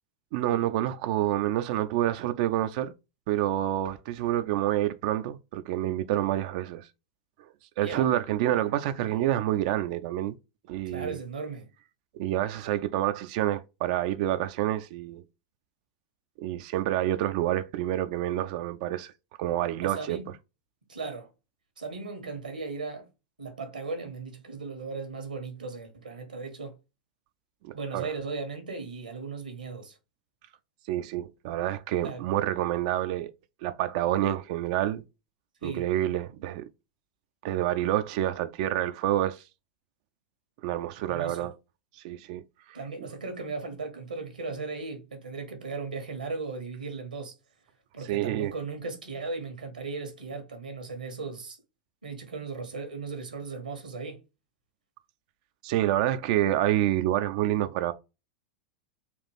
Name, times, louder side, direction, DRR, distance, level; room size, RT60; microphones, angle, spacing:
voice 1, 0.3-2.9 3.3-6.9 7.8-10.4 10.7-11.2 12.1-15.2 16.4-19.1 19.4-20.2 27.6-28.1 30.9-33.3 33.6-35.0 35.6-36.6 37.4-39.4 40.6-41.5 42.0-42.4 42.7-42.8 48.1-48.5 55.6-57.9, right 13 dB, 55° right, 0.4 m, -28 dB
voice 2, 8.7-9.2 10.8-11.6 19.8-20.3 20.9-21.3 21.8-23.1 23.4-26.7 27.7-30.0 32.0-32.2 35.6-35.9 41.1-41.5 42.7-47.3 47.9-51.6 52.0-54.2, right 4 dB, 85° right, 1.3 m, -37 dB
4.2 x 2.4 x 3.4 m
figure-of-eight pair, 95°, 4 cm